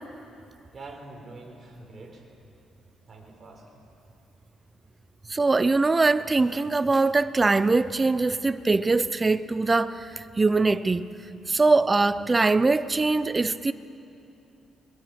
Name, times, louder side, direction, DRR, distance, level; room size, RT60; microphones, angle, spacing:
voice 1, 0.7-2.2 3.1-3.8, right 2 dB, 40° right, 4.3 m, -45 dB
voice 2, 5.3-11.1 11.5-13.7, right 3 dB, 25° right, 0.6 m, -22 dB
22.0 x 21.5 x 6.1 m
cardioid pair, 90°, 0 cm